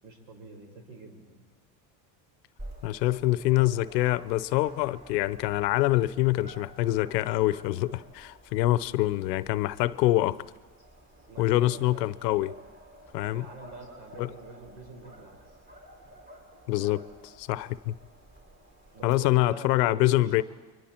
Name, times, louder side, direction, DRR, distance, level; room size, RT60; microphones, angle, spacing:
voice 1, 0.0-1.4 11.3-12.1 13.3-15.6 18.9-20.4, right 3 dB, 65° right, 4 dB, 4.8 m, -46 dB
Dog, 2.6-19.1, right 1 dB, 25° right, 4.9 m, -51 dB
voice 2, 2.8-10.4 11.4-12.5 13.1-13.5 14.2-14.3 16.7-17.9 19.0-20.4, left 16 dB, 90° left, 17 dB, 0.8 m, -25 dB
28.5 x 23.0 x 4.4 m, 1.2 s
supercardioid pair, 100°, 48 cm